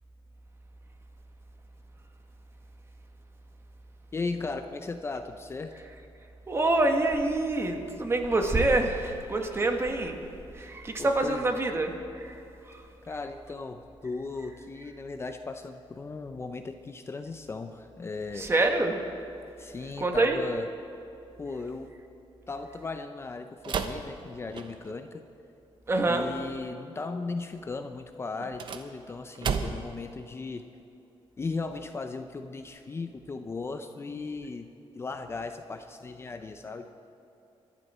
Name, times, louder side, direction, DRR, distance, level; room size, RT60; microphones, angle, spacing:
voice 1, 4.1-5.7 11.0-11.6 13.1-18.5 19.6-20.7 21.4-21.9 22.5-25.2 26.1-30.6 31.4-34.7 34.9-36.9, left 3 dB, 25° left, 7 dB, 0.6 m, -37 dB
voice 2, 6.5-10.2 10.5-12.8 18.3-19.0 20.0-20.4 25.9-26.2, right 2 dB, 25° right, 4 dB, 1.5 m, -26 dB
sound 1, 23.6-25.0 28.4-30.0, right 6 dB, 55° right, 1.0 m, -33 dB
26.0 x 11.5 x 4.4 m, 2.8 s
wide cardioid pair, 145°, 10 cm